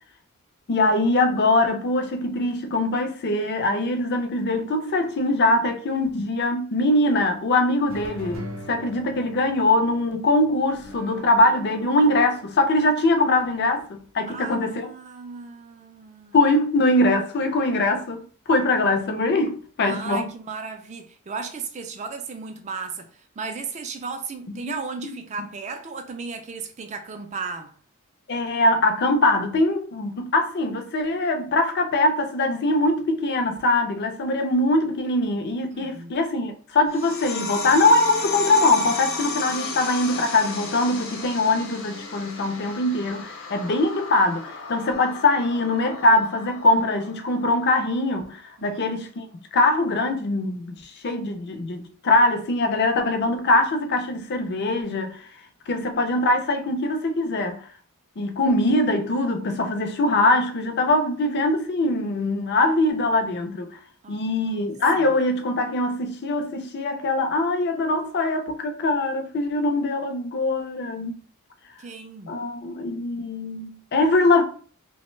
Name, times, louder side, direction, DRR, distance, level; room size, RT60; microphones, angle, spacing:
voice 1, 0.7-14.9 16.3-20.3 24.5-24.6 28.3-49.2 49.5-55.3 55.7-57.6 58.2-63.7 64.1-71.2 72.3-74.4, left 2 dB, 50° left, 0.5 m, -22 dB
sound 1, 7.9-14.1, equal, 65° right, 0.7 m, -42 dB
voice 2, 14.3-16.4 19.8-27.7 35.7-36.1 48.6-49.0 64.0-64.5 65.0-65.1 71.8-72.4, right 4 dB, 30° right, 0.3 m, -35 dB
sound 2, 36.9-47.9, left 4 dB, 70° left, 0.8 m, -34 dB
2.9 x 2.1 x 3.1 m
head